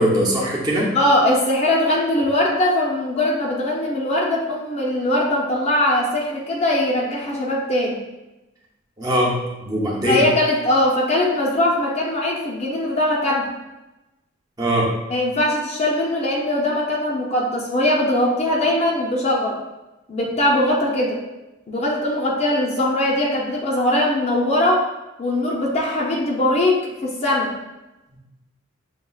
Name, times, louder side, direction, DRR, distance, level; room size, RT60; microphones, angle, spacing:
voice 1, 0.0-0.9 9.0-10.3 14.6-14.9 28.1-28.2, equal, 20° right, -4 dB, 0.7 m, -21 dB
voice 2, 0.9-8.0 10.0-13.5 15.1-19.6 20.1-21.2 21.7-24.9 25.2-27.5, left 1 dB, 30° left, -3 dB, 0.5 m, -21 dB
6.7 x 2.3 x 2.3 m, 1.0 s
head